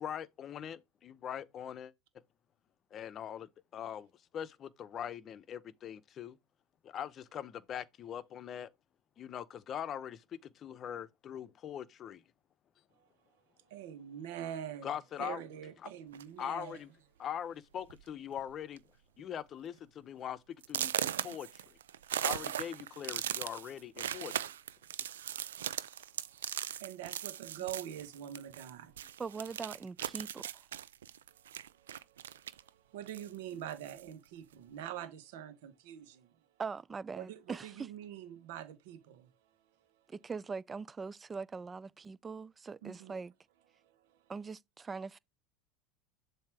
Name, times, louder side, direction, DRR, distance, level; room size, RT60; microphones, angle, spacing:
voice 1, 0.0-1.9 2.9-4.1 4.3-6.4 6.8-8.7 9.2-12.2 14.8-15.4 15.8-15.9 16.4-16.9 17.2-18.8 19.2-20.4 20.7-21.6 22.2-24.3, left 9 dB, 40° left, 0.7 m, -42 dB
voice 2, 13.7-14.9 15.2-16.8 26.8-28.9 32.9-36.0 37.1-39.0 42.8-43.2, right 10 dB, 75° right, 1.2 m, -44 dB
sound 1, 16.1-16.5 17.3-17.4 17.8-18.0 18.3-18.8 19.2-19.3 19.8-19.9 20.6-28.7 29.0-32.7 33.1-34.1, right 10 dB, 90° right, 0.4 m, -39 dB
voice 3, 29.2-30.7 36.6-37.9 40.1-43.3 44.3-45.2, right 5 dB, 20° right, 0.3 m, -42 dB
7.3 x 2.8 x 4.6 m
hypercardioid pair, 95°, 0 cm